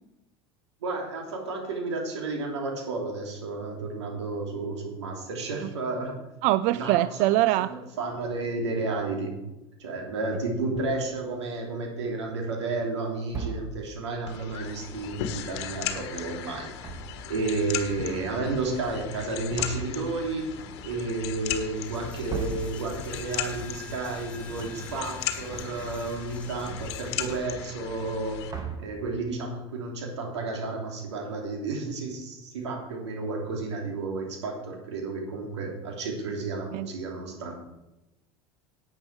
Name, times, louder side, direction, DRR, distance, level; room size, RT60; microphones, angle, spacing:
voice 1, 0.8-6.2 6.7-7.3 7.7-9.3 9.8-16.9 17.3-20.5 20.8-28.4 28.8-37.5, right 3 dB, 85° right, 1 dB, 2.9 m, -32 dB
voice 2, 6.4-7.7 36.7-36.9, right 16 dB, 55° right, 16 dB, 0.4 m, -23 dB
sound 1, 10.7-11.2 12.0-12.5 13.3-14.0 16.6-17.5 17.7-18.3 19.1-23.7 24.0-25.2 25.5-26.0 26.3-27.9 28.2-29.3, right 5 dB, 25° right, 2.1 m, -40 dB
sound 2, 14.3-28.5, left 11 dB, 70° left, 1.3 m, -37 dB
Coin (dropping), 21.6-27.6, left 3 dB, 10° left, 2.7 m, -47 dB
10.5 x 9.0 x 4.7 m, 0.97 s
hypercardioid pair, 90°, 14 cm